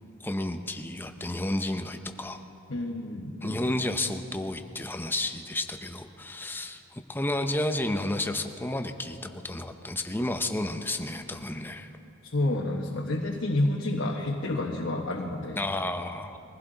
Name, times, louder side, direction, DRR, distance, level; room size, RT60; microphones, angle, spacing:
voice 1, 0.2-2.4 3.4-11.9 15.6-16.4, left 1 dB, 10° left, 7 dB, 0.6 m, -31 dB
voice 2, 2.7-3.6 12.3-15.6, left 1 dB, 65° left, -1 dB, 1.2 m, -29 dB
22.5 x 15.5 x 3.9 m, 2.6 s
head